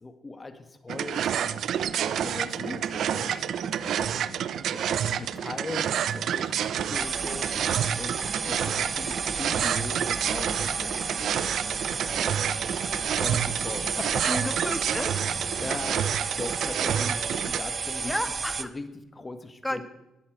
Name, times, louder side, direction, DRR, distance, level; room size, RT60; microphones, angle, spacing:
voice 1, 0.0-1.6 2.1-3.5 3.8-4.2 4.7-7.5 8.0-8.2 8.5-11.5 12.2-12.4 13.1-14.4 15.6-16.1 16.4-18.2 18.6-19.8, left 2 dB, 25° left, 9 dB, 1.8 m, -39 dB
sound 1, 0.9-17.6, right 9 dB, 70° right, 0.8 m, -29 dB
sound 2, 1.7-15.8, equal, 85° left, 4.5 m, -47 dB
sound 3, 6.9-18.6, right 5 dB, 40° right, 0.8 m, -32 dB
voice 2, 14.2-15.1 18.0-18.6 19.6-19.8, left 1 dB, 10° left, 11 dB, 1.5 m, -32 dB
19.0 x 8.6 x 8.0 m, 0.92 s
cardioid pair, 90°, 0 cm